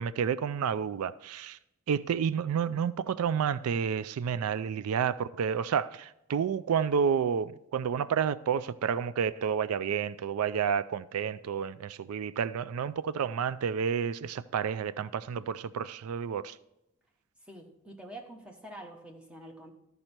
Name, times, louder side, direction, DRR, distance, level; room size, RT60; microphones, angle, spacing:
voice 1, 0.0-1.6 1.9-16.6, right 7 dB, 85° right, 0.3 m, -30 dB
voice 2, 17.4-19.7, right 1 dB, 5° right, 1.1 m, -46 dB
13.5 x 5.4 x 4.4 m
head